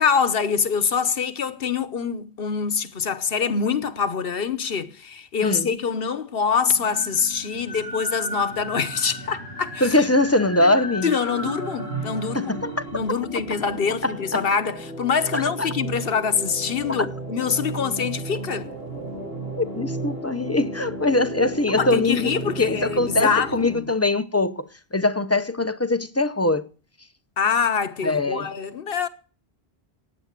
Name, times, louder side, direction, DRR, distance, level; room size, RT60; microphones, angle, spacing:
voice 1, 0.0-9.8 11.0-12.6 12.9-18.7 21.7-23.9 27.4-29.1, left 6 dB, 65° left, 1.2 m, -25 dB
sound 1, 6.7-23.8, right 2 dB, 80° right, 8.1 m, -34 dB
voice 2, 9.8-11.1 12.3-12.8 14.0-14.4 15.3-15.7 17.0-17.1 19.6-22.2 22.6-26.7 28.0-28.5, left 2 dB, 20° left, 0.6 m, -22 dB
15.0 x 9.7 x 6.6 m
omnidirectional pair, 1.0 m